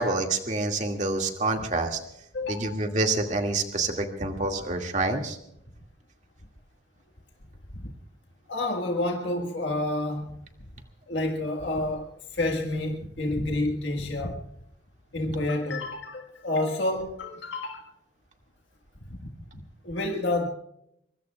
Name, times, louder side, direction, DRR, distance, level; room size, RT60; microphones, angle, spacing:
voice 1, 0.0-2.0 2.5-5.4, right 2 dB, 40° right, 2.1 m, -27 dB
voice 2, 2.3-2.8 7.7-7.9 8.5-10.3 11.1-14.4 15.1-17.9 19.2-20.5, left 2 dB, 75° left, 1.6 m, -29 dB
23.5 x 23.0 x 2.3 m
head